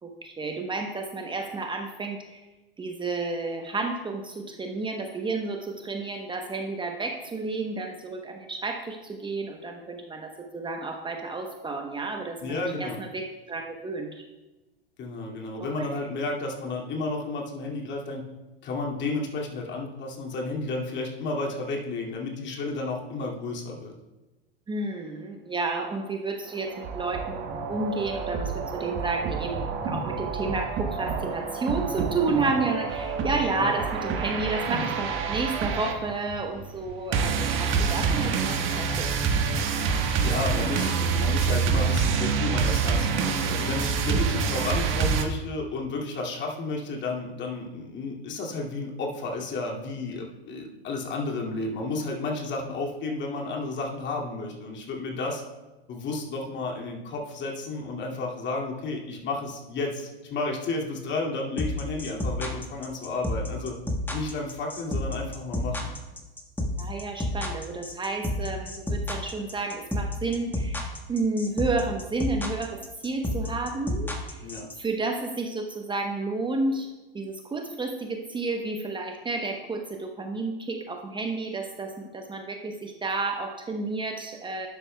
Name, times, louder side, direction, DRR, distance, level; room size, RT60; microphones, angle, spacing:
voice 1, 0.0-2.4 2.8-14.2 15.6-16.0 24.7-39.1 44.1-44.3 66.8-72.8 73.0-74.4 74.8-76.9 77.1-84.7, right 3 dB, 15° right, 3 dB, 0.9 m, -31 dB
voice 2, 12.4-13.0 15.0-18.2 18.6-23.9 33.6-33.7 39.8-39.9 40.2-55.4 55.9-63.7 64.1-65.9 74.4-74.7, left 3 dB, 35° left, -1 dB, 2.4 m, -32 dB
sound 1, 26.5-45.2, right 5 dB, 40° right, 1.4 m, -27 dB
sound 2, 61.6-74.7, left 1 dB, 5° left, 1.5 m, -30 dB
12.5 x 9.8 x 2.3 m, 1.1 s
hypercardioid pair, 95°, 30 cm